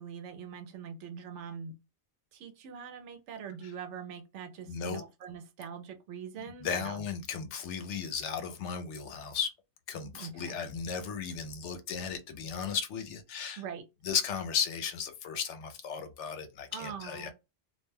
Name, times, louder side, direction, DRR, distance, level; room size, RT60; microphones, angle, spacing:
voice 1, 0.0-1.7 2.3-7.0 10.1-10.6 13.6-13.8 16.7-17.3, right 7 dB, 80° right, 0.9 m, -43 dB
voice 2, 4.7-5.0 6.6-9.5 9.9-13.6 14.0-17.3, left 6 dB, 80° left, 0.9 m, -35 dB
2.4 x 2.1 x 3.2 m
omnidirectional pair, 1.2 m